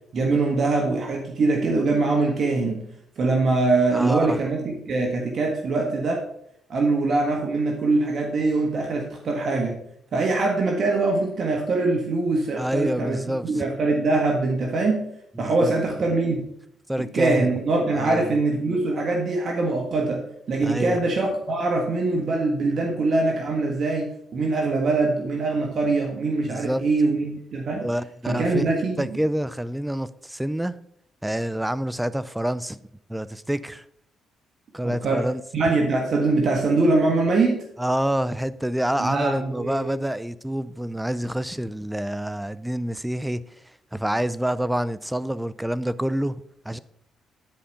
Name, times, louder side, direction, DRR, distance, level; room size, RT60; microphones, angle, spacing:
voice 1, 0.1-2.9 3.2-6.2 6.7-9.8 10.1-15.1 15.4-16.4 17.0-27.9 28.2-29.1 34.8-35.3 35.5-37.6 39.0-39.9, right 3 dB, 55° right, 1.6 m, -23 dB
voice 2, 3.9-4.4 12.6-13.7 15.4-15.7 16.9-17.5 18.0-18.3 20.6-21.0 26.5-26.9 27.8-28.7 29.0-30.8 31.2-32.8 33.1-33.8 34.7-35.4 37.8-43.4 43.9-46.8, right 1 dB, 5° right, 0.4 m, -27 dB
10.5 x 5.0 x 5.6 m
cardioid pair, 90°, 0 cm